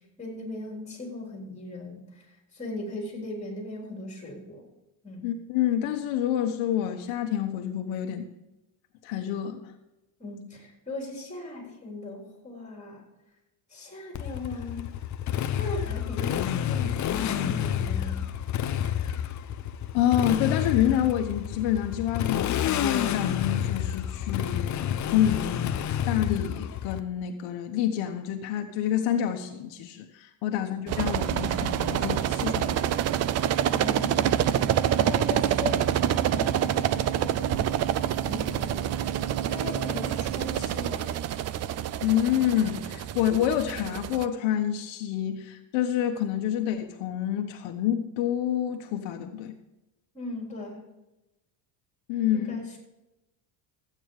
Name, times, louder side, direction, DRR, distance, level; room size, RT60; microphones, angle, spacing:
voice 1, 0.2-2.3 2.5-4.6 5.0-5.3 10.2-13.1 13.7-14.9 15.6-18.2 30.5-30.6 33.7-34.4 35.0-37.6 38.3-41.1 50.1-50.9 52.3-52.8, left 2 dB, 15° left, 0 dB, 3.8 m, -38 dB
voice 2, 5.2-8.3 9.0-9.7 19.1-19.3 19.9-33.0 42.0-49.5 52.1-52.6, left 10 dB, 70° left, 4 dB, 1.2 m, -28 dB
Motorcycle, 14.1-27.0, left 10 dB, 40° left, 0.7 m, -29 dB
sound 1, 30.9-44.3, right 10 dB, 35° right, 0.4 m, -27 dB
14.5 x 8.9 x 4.8 m, 0.97 s
cardioid pair, 135°, 47 cm